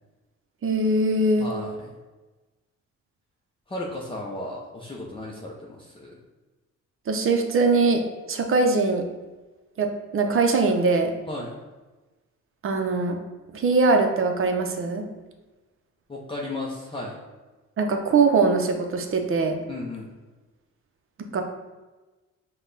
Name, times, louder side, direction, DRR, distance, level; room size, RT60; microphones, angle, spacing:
voice 1, 0.6-1.5 7.1-8.0 8.3-9.0 9.8-11.1 12.6-13.2 13.5-15.0 17.8-19.6 21.3-21.4, right 3 dB, 45° right, 5 dB, 0.6 m, -22 dB
voice 2, 1.4-1.9 3.7-6.2 11.3-11.6 16.1-17.2 19.7-20.1, left 2 dB, 15° left, -4 dB, 0.6 m, -34 dB
5.2 x 2.3 x 3.8 m, 1.2 s
cardioid pair, 90°, 30 cm